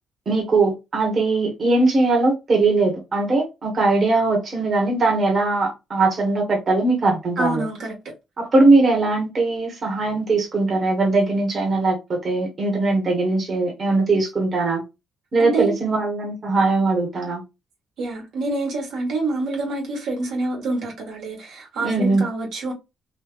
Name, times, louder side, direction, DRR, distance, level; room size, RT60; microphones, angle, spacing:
voice 1, 0.3-7.6 8.4-14.8 15.3-17.4 21.8-22.2, right 3 dB, 40° right, 1.3 m, -20 dB
voice 2, 7.4-7.9 15.4-15.8 18.0-22.7, right 2 dB, 75° right, 1.5 m, -26 dB
3.2 x 2.7 x 2.4 m
cardioid pair, 90°, 0 cm